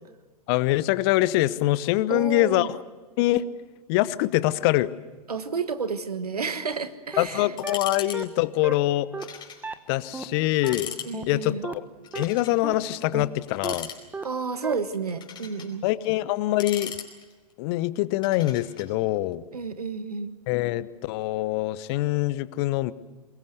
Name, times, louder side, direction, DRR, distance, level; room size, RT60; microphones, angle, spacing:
voice 1, 0.5-2.8 3.2-3.5 3.9-4.9 7.2-9.1 9.9-10.9 11.3-11.8 12.1-13.9 15.8-16.9 17.6-19.4 20.5-22.9, left 17 dB, 40° left, 18 dB, 0.9 m, -24 dB
voice 2, 2.1-2.8 5.3-7.5 11.0-11.6 14.2-15.8 19.5-20.3, right 5 dB, 75° right, 12 dB, 1.5 m, -31 dB
sound 1, 6.7-6.8 7.1-7.2 7.6-7.7 8.1-8.2 8.6-8.7 9.1-9.2 9.6-9.7 10.1-10.2 10.6-10.7 11.1-11.2 11.6-11.7 12.1-12.2 12.6-12.7 13.1-13.2 13.6-13.7 14.1-14.2 14.6-14.7, right 4 dB, 10° right, 1.2 m, -33 dB
sound 2, 7.6-8.2 8.4-8.6 9.2-9.6 10.0-10.1 10.5-11.1 12.0-12.6 13.5-14.3 14.9-15.7 16.4-17.5 18.2-18.9, left 8 dB, 25° left, 4.6 m, -38 dB
23.5 x 21.0 x 8.0 m, 1.3 s
figure-of-eight pair, 100°, 20 cm